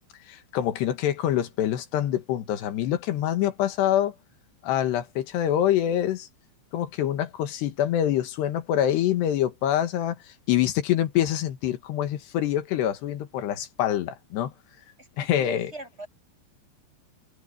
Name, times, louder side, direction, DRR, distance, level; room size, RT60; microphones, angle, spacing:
voice 1, 0.3-4.1 4.6-6.3 6.7-10.2 10.5-14.5 15.2-15.7, left 11 dB, 65° left, 3.4 m, -25 dB
voice 2, 15.0-16.1, right 2 dB, 10° right, 7.8 m, -41 dB
omnidirectional pair, 5.8 m